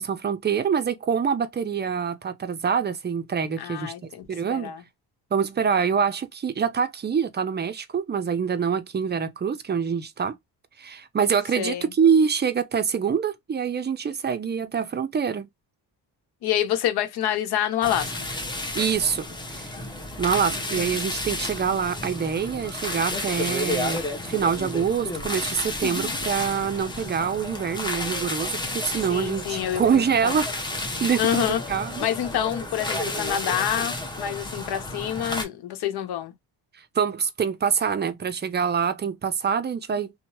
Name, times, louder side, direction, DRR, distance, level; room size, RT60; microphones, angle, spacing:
voice 1, 0.0-3.9 4.3-4.7 5.3-10.4 10.8-15.5 18.6-19.7 20.2-30.5 31.0-32.1 36.9-40.1, right 7 dB, 25° right, 0.5 m, -25 dB
voice 2, 3.6-4.2 4.5-4.8 11.6-11.9 16.4-18.3 29.1-30.4 31.2-31.6 32.0-36.3, left 10 dB, 75° left, 0.9 m, -27 dB
sound 1, 17.8-35.4, left 1 dB, 10° left, 0.8 m, -31 dB
2.8 x 2.2 x 2.9 m
cardioid pair, 100°, 39 cm